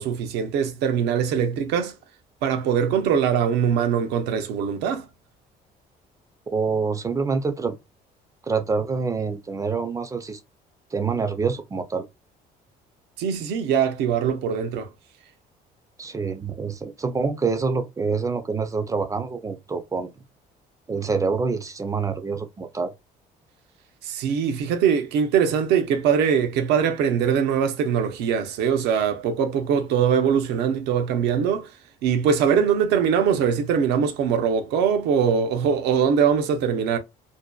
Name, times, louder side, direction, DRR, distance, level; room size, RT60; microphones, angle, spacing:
voice 1, 0.0-2.0 2.4-5.1 13.2-14.9 24.0-31.7 32.0-37.0, right 7 dB, 85° right, 0.5 m, -22 dB
voice 2, 6.5-7.8 8.4-10.4 10.9-12.0 16.0-20.1 20.9-22.9, right 4 dB, 20° right, 0.4 m, -26 dB
2.6 x 2.1 x 2.2 m
cardioid pair, 110°, 17 cm